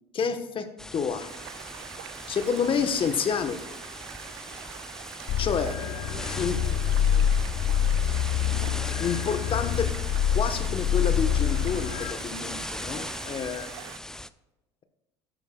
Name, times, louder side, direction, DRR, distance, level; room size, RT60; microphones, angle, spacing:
voice 1, 0.1-1.3 2.3-3.6 5.4-5.7 6.2-6.6 9.0-9.9 10.3-13.7, left 6 dB, 40° left, 8 dB, 1.2 m, -29 dB
sound 1, 0.8-14.3, left 1 dB, 5° left, 0.4 m, -39 dB
sound 2, 1.1-14.0, right 13 dB, 90° right, 0.5 m, -44 dB
sound 3, 5.3-12.1, left 9 dB, 55° left, 0.6 m, -26 dB
voice 2, 5.5-8.2 9.0-9.8 13.8-13.9, right 7 dB, 65° right, 8 dB, 1.4 m, -49 dB
13.0 x 10.5 x 2.4 m, 1.0 s
supercardioid pair, 80°, 14 cm